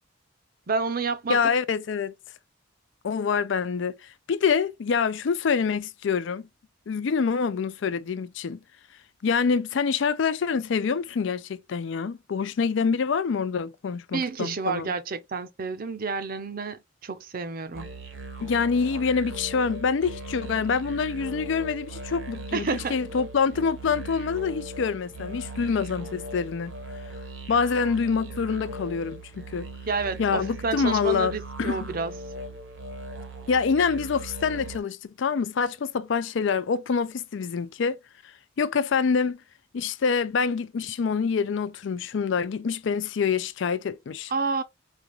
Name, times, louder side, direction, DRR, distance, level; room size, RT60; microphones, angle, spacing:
voice 1, 0.7-1.4 14.1-17.9 22.5-23.0 29.9-32.1 44.3-44.6, right 4 dB, 45° right, 0.6 m, -29 dB
voice 2, 1.3-2.1 3.0-6.5 6.9-8.6 9.2-14.9 18.4-26.7 27.5-29.7 30.2-31.9 33.5-38.0 38.6-39.4 39.7-44.3, left 5 dB, 65° left, 0.4 m, -26 dB
sound 1, 17.7-34.8, right 2 dB, 65° right, 0.9 m, -39 dB
5.0 x 2.3 x 3.0 m
head